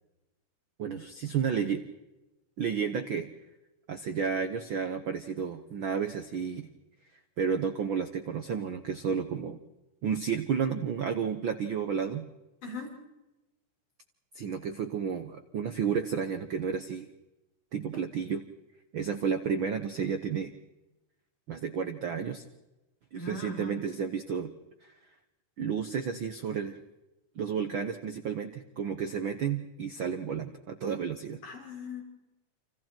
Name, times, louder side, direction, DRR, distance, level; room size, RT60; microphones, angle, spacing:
voice 1, 0.8-1.8 2.6-3.3 3.9-6.7 7.4-9.6 10.0-12.3 14.3-17.1 17.7-18.5 18.9-20.5 21.5-22.4 23.1-24.5 24.8-24.9 25.6-26.8 27.3-31.4, right 6 dB, 65° right, 8 dB, 1.3 m, -31 dB
voice 2, 23.1-23.7 31.4-32.0, left 2 dB, 80° left, -1 dB, 7.0 m, -39 dB
29.5 x 28.0 x 4.5 m, 1.0 s
omnidirectional pair, 3.6 m